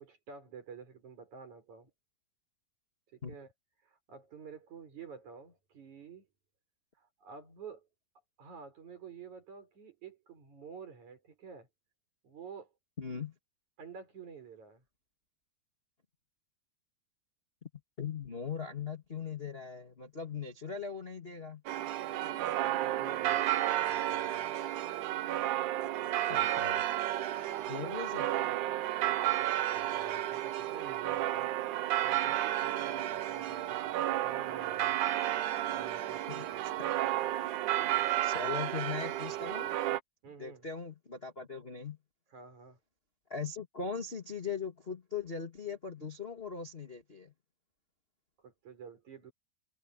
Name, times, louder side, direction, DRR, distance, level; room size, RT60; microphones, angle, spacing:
voice 1, 0.0-1.9 3.1-3.5 3.8-6.3 7.0-7.9 8.4-11.7 12.2-12.7 13.8-14.8 22.1-24.5 29.7-35.0 35.7-36.6 40.2-40.7 42.3-42.8 48.4-49.3, right 6 dB, 45° right, 6.7 m, -50 dB
voice 2, 13.0-13.3 17.6-17.7 18.0-21.6 26.3-26.9 27.7-28.6 36.3-36.4 36.8-36.9 38.2-39.7 40.4-42.0 43.3-47.3, left 6 dB, 25° left, 1.4 m, -40 dB
sound 1, 21.7-40.0, right 14 dB, 70° right, 1.9 m, -32 dB
omnidirectional pair, 4.6 m